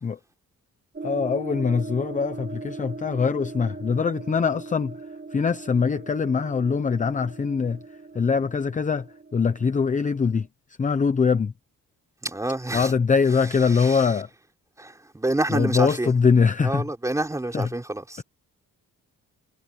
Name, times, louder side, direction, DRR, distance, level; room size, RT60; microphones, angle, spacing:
sound 1, 0.9-10.5, right 4 dB, 30° right, 3.0 m, -39 dB
voice 1, 1.0-5.0 5.3-7.8 8.1-10.5 10.8-11.5 12.7-14.3 15.5-16.8 17.5-17.7, left 5 dB, 25° left, 0.7 m, -23 dB
voice 2, 12.2-12.9 13.7-14.1 14.8-16.1 16.6-18.2, right 2 dB, 10° right, 3.9 m, -28 dB
wide cardioid pair, 180°, 32 cm